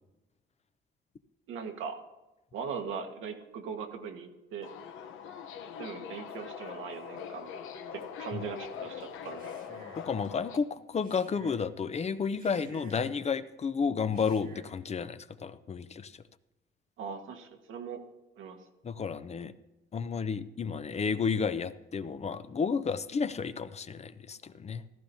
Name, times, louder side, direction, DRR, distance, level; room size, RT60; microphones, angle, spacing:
voice 1, 1.5-2.0 2.5-4.7 5.8-7.5 7.9-9.5 17.0-18.0 18.4-18.6, right 6 dB, 85° right, 4 dB, 1.5 m, -40 dB
Subway metro underground, 4.6-10.6, left 7 dB, 85° left, 0.9 m, -42 dB
Male speech man speaking, 9.2-10.1 10.9-11.7 12.3-13.3 14.0-14.8, right 3 dB, 45° right, 1.6 m, -53 dB
voice 2, 10.0-16.1 18.8-19.5 19.9-24.9, left 5 dB, 35° left, 13 dB, 0.5 m, -32 dB
15.5 x 13.5 x 2.7 m, 1.0 s
cardioid pair, 90°, 20 cm